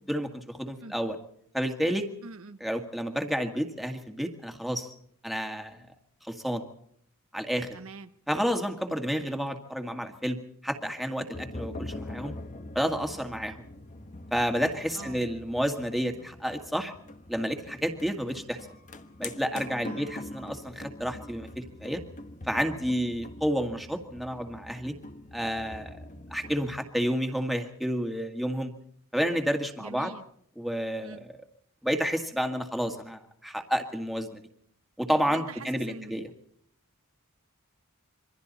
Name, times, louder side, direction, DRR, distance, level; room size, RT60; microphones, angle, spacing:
voice 1, 0.1-1.2 1.5-2.1 2.6-4.9 5.2-5.8 6.2-6.6 7.3-7.7 8.3-10.4 10.6-12.3 12.8-13.7 14.3-16.9 17.3-18.6 19.2-22.0 22.5-25.0 25.3-26.0 26.3-28.7 29.1-30.1 30.6-31.2 31.8-34.4 35.0-36.3, equal, ahead, 4 dB, 1.8 m, -30 dB
voice 2, 2.2-2.6 7.7-8.1 15.0-15.2 19.9-20.1 29.8-30.3 31.0-31.3 35.2-36.3, right 3 dB, 70° right, 9 dB, 1.1 m, -44 dB
sound 1, 11.3-26.8, left 2 dB, 35° left, 1.2 m, -43 dB
27.0 x 23.5 x 4.1 m, 0.67 s
head